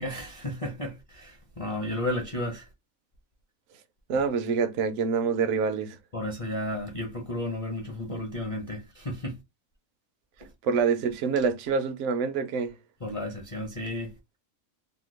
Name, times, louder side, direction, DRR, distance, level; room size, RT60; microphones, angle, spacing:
voice 1, 0.0-2.7 6.1-9.4 13.0-14.2, left 1 dB, 40° left, 0.5 m, -33 dB
voice 2, 4.1-6.0 10.6-12.7, right 5 dB, 65° right, 0.8 m, -26 dB
2.8 x 2.2 x 3.0 m
omnidirectional pair, 1.5 m